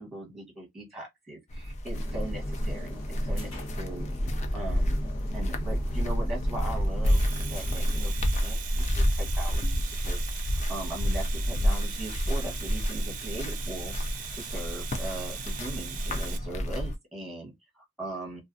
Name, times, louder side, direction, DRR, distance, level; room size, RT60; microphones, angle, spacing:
voice 1, 0.0-5.0 5.3-18.4, right 1 dB, ahead, 1.1 m, -40 dB
sound 1, 1.5-17.0, equal, 30° left, 0.4 m, -29 dB
sound 2, 1.9-8.1, equal, 75° left, 1.2 m, -39 dB
Domestic sounds home sounds, 6.9-16.4, right 9 dB, 40° right, 0.4 m, -41 dB
2.4 x 2.4 x 2.5 m
head